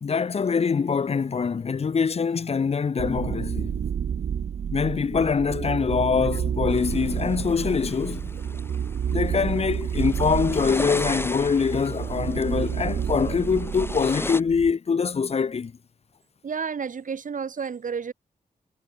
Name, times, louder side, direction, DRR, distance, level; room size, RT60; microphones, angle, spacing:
voice 1, 0.0-3.7 4.7-8.3 9.1-15.7, left 5 dB, 40° left, 0.7 m, -24 dB
sound 1, 3.0-14.7, right 8 dB, 80° right, 4.6 m, -30 dB
sound 2, 6.7-14.4, left 2 dB, 15° left, 3.5 m, -36 dB
voice 2, 16.4-18.1, right 6 dB, 55° right, 1.7 m, -31 dB
wide cardioid pair, 115°, 16 cm